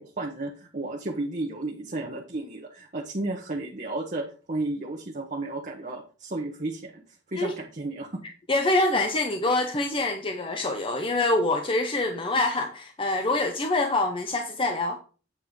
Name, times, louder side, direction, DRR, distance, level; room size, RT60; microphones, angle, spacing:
voice 1, 0.0-7.0 7.3-8.2, right 2 dB, 40° right, 1.1 m, -33 dB
voice 2, 8.5-15.0, left 2 dB, 30° left, 0.7 m, -25 dB
8.3 x 4.4 x 5.2 m
head